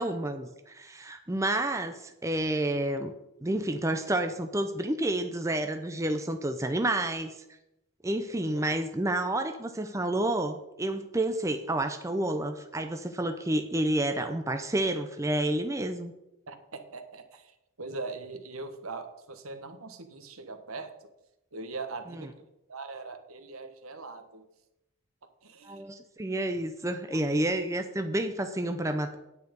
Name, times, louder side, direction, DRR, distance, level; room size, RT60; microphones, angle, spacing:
voice 1, 0.0-3.1 3.4-7.3 8.0-16.1 22.1-22.2 25.6-29.2, right 1 dB, 15° right, 7 dB, 0.5 m, -29 dB
voice 2, 8.3-8.7 16.5-21.1 21.5-22.4 22.7-24.5 25.4-25.8 27.1-27.3, right 3 dB, 75° right, 8 dB, 1.2 m, -41 dB
9.4 x 8.4 x 5.2 m, 0.89 s
head